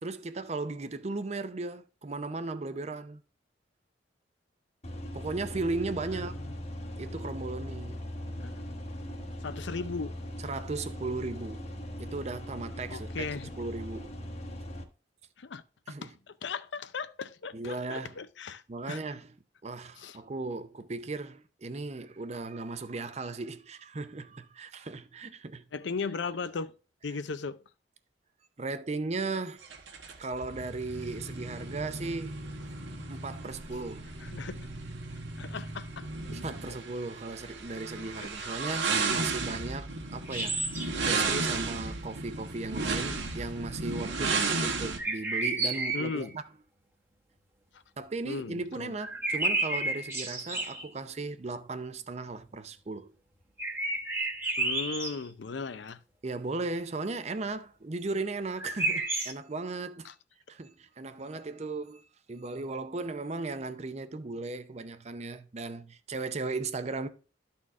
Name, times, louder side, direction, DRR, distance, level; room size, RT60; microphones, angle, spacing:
voice 1, 0.0-3.2 5.1-6.3 7.0-8.0 10.4-13.3 13.6-14.1 15.9-16.1 17.5-18.2 18.7-19.3 19.6-25.7 28.6-29.6 30.2-32.4 33.1-34.2 36.3-40.6 41.1-46.4 48.0-53.1 56.2-60.1 60.5-67.1, right 3 dB, 35° right, 0.6 m, -36 dB
sound 1, 4.8-14.8, equal, 35° left, 1.0 m, -40 dB
voice 2, 6.1-6.5 8.4-8.8 9.4-10.2 12.9-13.5 15.4-18.6 18.9-19.0 20.0-20.2 25.7-26.7 27.0-27.6 34.2-34.7 35.4-36.4 36.6-36.7 38.2-38.6 45.9-46.4 47.7-47.8 48.2-48.9 54.6-56.0 60.0-60.1, left 4 dB, 75° left, 0.6 m, -37 dB
sound 2, 29.6-45.0, right 4 dB, 85° right, 1.4 m, -34 dB
sound 3, 40.3-41.0 45.0-46.2 49.0-50.9 53.6-55.2 58.6-59.3, right 2 dB, 15° right, 1.0 m, -31 dB
12.5 x 4.3 x 3.6 m
head